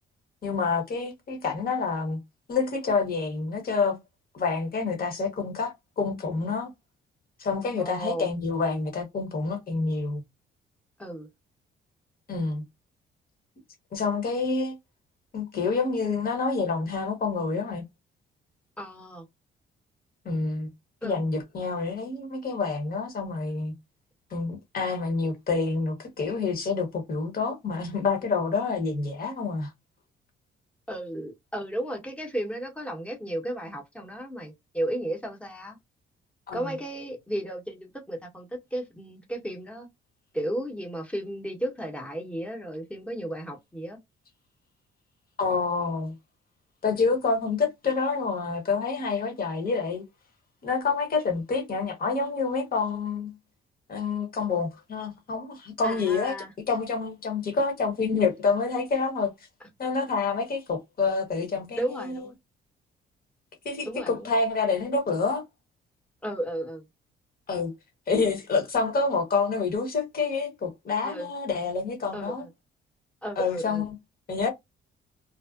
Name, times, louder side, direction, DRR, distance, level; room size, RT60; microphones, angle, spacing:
voice 1, 0.4-2.2 2.5-4.0 4.3-6.7 7.4-10.2 12.3-12.6 13.9-14.8 15.3-17.8 20.2-20.7 21.0-23.7 24.3-29.7 36.5-36.6 45.4-46.1 46.8-50.0 50.6-53.3 53.9-56.3 56.7-59.3 59.8-62.2 63.6-65.4 67.5-67.7 68.1-72.4 73.4-73.9 74.3-74.5, left 4 dB, 50° left, 1.0 m, -27 dB
voice 2, 7.8-8.3 11.0-11.3 18.8-19.3 21.0-21.2 30.9-35.8 36.5-39.9 40.3-44.0 55.8-56.5 61.8-62.4 63.9-64.3 66.2-66.8 71.0-71.3 72.1-72.5 73.2-73.8, right 1 dB, 5° left, 0.8 m, -34 dB
2.5 x 2.1 x 2.3 m
cardioid pair, 90°, 20 cm